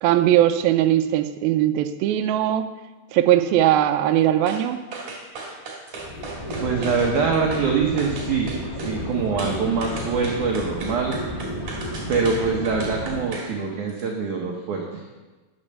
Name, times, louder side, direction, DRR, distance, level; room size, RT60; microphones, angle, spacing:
voice 1, 0.0-2.7 3.1-4.8, right 12 dB, 85° right, 8 dB, 2.2 m, -19 dB
sound 1, 4.5-4.6 4.9-7.7 8.0-9.0 9.4-13.5 13.9-14.0, right 3 dB, 50° right, 3.1 m, -36 dB
sound 2, 6.0-13.2, equal, 15° left, 1.7 m, -32 dB
voice 2, 6.6-11.2 12.1-15.0, right 5 dB, 65° right, 0 dB, 2.0 m, -24 dB
10.5 x 8.7 x 6.6 m, 1.2 s
omnidirectional pair, 4.8 m